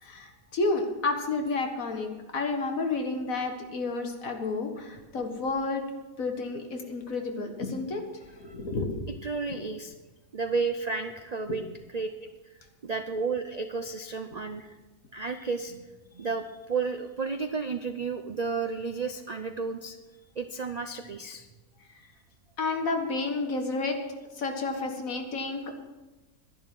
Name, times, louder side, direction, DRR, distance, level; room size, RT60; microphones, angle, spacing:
voice 1, 0.0-5.8 6.2-8.0 8.4-9.1 9.5-9.6 11.5-11.6 22.6-24.0 24.4-25.7, left 3 dB, 60° left, 4 dB, 1.9 m, -31 dB
voice 2, 9.2-9.9 10.3-11.6 11.9-14.7 15.1-15.9 16.1-20.0 20.4-21.4, right 4 dB, 70° right, 8 dB, 0.3 m, -32 dB
11.5 x 11.0 x 6.1 m, 1.2 s
omnidirectional pair, 1.6 m